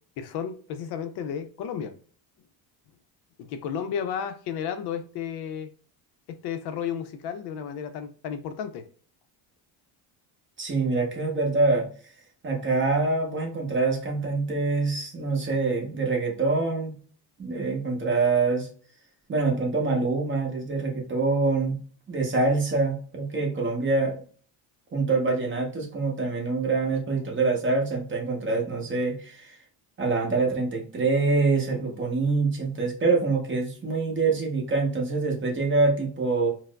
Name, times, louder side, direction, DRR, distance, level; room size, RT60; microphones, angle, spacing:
voice 1, 0.2-2.0 3.4-5.7 6.3-8.9, left 8 dB, 60° left, 0.5 m, -33 dB
voice 2, 10.6-11.9 12.4-16.9 17.4-18.7 19.3-21.8 22.1-24.2 24.9-29.6 30.0-36.5, right 3 dB, 25° right, 0.8 m, -25 dB
4.4 x 2.0 x 2.2 m
cardioid pair, 130°, 45 cm